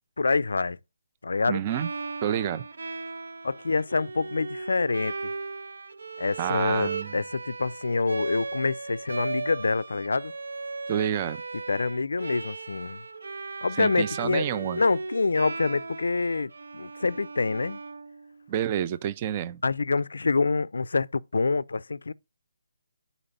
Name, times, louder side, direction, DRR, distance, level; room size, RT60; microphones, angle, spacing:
voice 1, 0.2-0.8 1.2-1.6 3.4-5.2 6.2-10.3 11.7-13.0 13.6-14.5 14.7-17.8 19.6-22.1, left 4 dB, 80° left, 0.4 m, -26 dB
voice 2, 1.5-1.9 2.2-2.6 6.4-7.1 10.9-11.4 13.8-14.8 18.5-19.6, right 10 dB, 20° right, 0.3 m, -28 dB
Bowed string instrument, 1.7-18.6, right 3 dB, 70° right, 0.5 m, -37 dB
8.9 x 4.1 x 5.3 m
hypercardioid pair, 170°, 0 cm